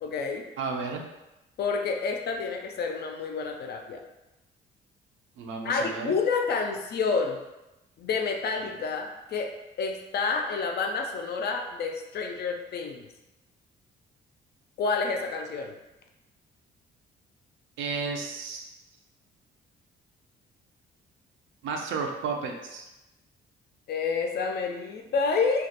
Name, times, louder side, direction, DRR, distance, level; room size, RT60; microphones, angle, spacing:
voice 1, 0.0-0.5 1.6-4.0 5.6-7.4 8.0-9.5 9.8-13.1 14.8-15.7 23.9-25.7, left 4 dB, 55° left, 4 dB, 0.4 m, -29 dB
voice 2, 0.6-1.0 5.4-6.1 17.8-18.7 21.6-22.9, right 4 dB, 75° right, 2 dB, 0.5 m, -32 dB
2.3 x 2.1 x 2.7 m, 0.97 s
cardioid pair, 90°, 20 cm